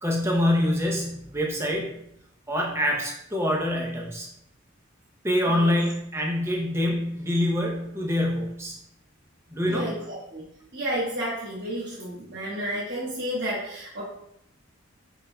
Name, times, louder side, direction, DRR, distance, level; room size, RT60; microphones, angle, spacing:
voice 1, 0.0-1.9 2.5-4.3 5.2-8.8 9.5-9.9, left 1 dB, 10° right, 0 dB, 0.6 m, -25 dB
voice 2, 9.6-10.4 10.7-14.0, equal, 50° right, -8 dB, 1.3 m, -31 dB
6.2 x 3.6 x 2.2 m, 0.78 s
head